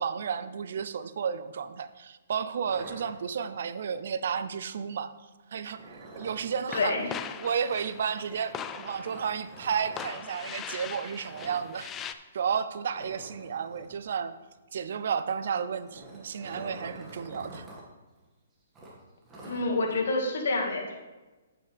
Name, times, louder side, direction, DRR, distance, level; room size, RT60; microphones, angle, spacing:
voice 1, 0.0-5.1 5.5-7.0 7.4-11.9 12.3-14.3 14.7-17.7, right 7 dB, 65° right, 13 dB, 0.6 m, -32 dB
sound 1, 2.6-3.7 5.7-6.6 8.8-10.1 11.3-11.7 11.9-12.1 12.4-12.5 12.9-14.0 15.6-17.8 18.2-18.3 18.7-20.0, right 1 dB, 15° right, 2.0 m, -47 dB
voice 2, 6.7-7.1 19.4-21.0, left 3 dB, 65° left, 1 dB, 2.0 m, -28 dB
sound 2, 6.7-12.1, left 8 dB, 20° left, 0.4 m, -41 dB
8.6 x 8.4 x 3.5 m, 1.2 s
hypercardioid pair, 150°, 0 cm